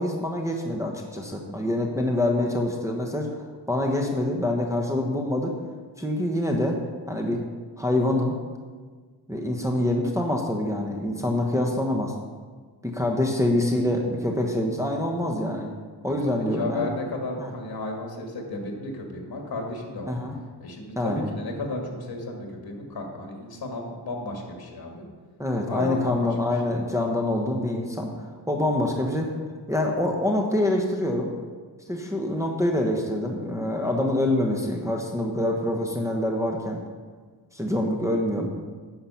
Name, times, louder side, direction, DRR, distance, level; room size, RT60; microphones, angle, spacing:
voice 1, 0.0-3.3 3.7-5.5 6.0-6.8 7.1-7.4 7.8-8.4 9.3-12.1 12.8-15.7 16.0-16.9 17.4-17.5 20.1-20.4 21.0-21.3 25.4-28.1 28.5-29.3 29.7-31.3 31.9-36.8 37.5-38.5, left 1 dB, 5° right, -1 dB, 1.1 m, -25 dB
voice 2, 16.0-20.1 20.6-25.1 25.7-26.3, left 2 dB, 55° left, 1 dB, 2.2 m, -33 dB
10.0 x 6.8 x 5.7 m, 1.5 s
wide cardioid pair, 110°, 42 cm